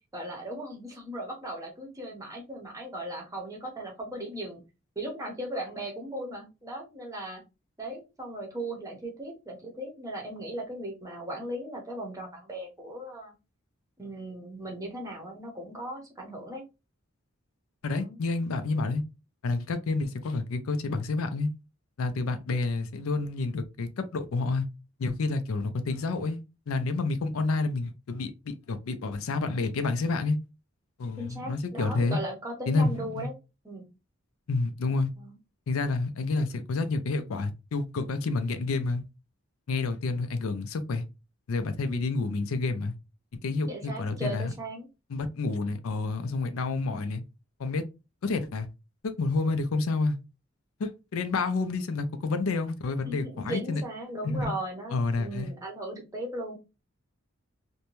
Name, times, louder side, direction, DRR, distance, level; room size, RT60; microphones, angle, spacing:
voice 1, 0.1-4.6 5.0-7.4 7.8-13.3 14.0-16.6 17.9-18.2 31.2-33.3 33.6-33.8 35.2-35.3 43.7-44.9 53.1-56.6, right 1 dB, 15° right, 0.7 m, -37 dB
voice 2, 17.8-19.0 19.4-21.5 22.0-24.6 25.0-26.4 26.7-30.4 31.0-32.2 32.7-33.3 34.5-35.1 35.7-39.0 39.7-41.0 41.5-43.0 43.4-44.5 45.1-47.2 47.6-47.8 48.2-48.7 49.0-50.2 50.8-53.8 54.2-54.5 54.9-55.5, left 3 dB, 85° left, 0.4 m, -29 dB
2.6 x 2.2 x 2.9 m
head